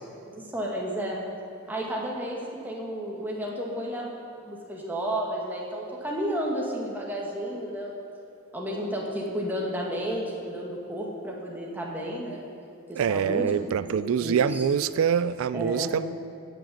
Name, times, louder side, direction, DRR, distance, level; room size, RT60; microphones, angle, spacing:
voice 1, 0.2-1.2 1.7-7.9 8.5-12.4 12.9-13.5 13.9-14.6 15.5-15.9, equal, 10° right, -3 dB, 1.8 m, -32 dB
voice 2, 13.0-16.1, right 7 dB, 70° right, 15 dB, 0.3 m, -25 dB
16.5 x 6.5 x 7.8 m, 2.5 s
head